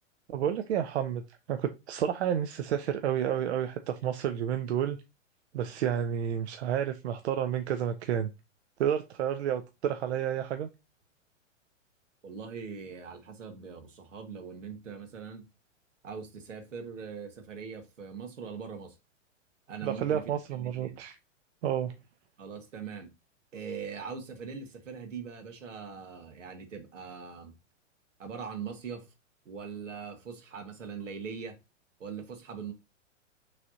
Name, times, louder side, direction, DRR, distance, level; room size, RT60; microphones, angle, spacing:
voice 1, 0.3-1.2 1.5-5.0 5.5-8.3 8.8-10.7 19.8-21.2 21.6-21.9, right 9 dB, 60° right, 0.6 m, -30 dB
voice 2, 12.2-15.4 16.0-18.9 19.7-20.2 20.5-21.0 22.4-23.1 23.5-27.5 28.2-29.1 29.4-31.6 32.0-32.7, right 6 dB, 75° right, 1.4 m, -41 dB
6.1 x 3.3 x 2.7 m
figure-of-eight pair, 105°, 38 cm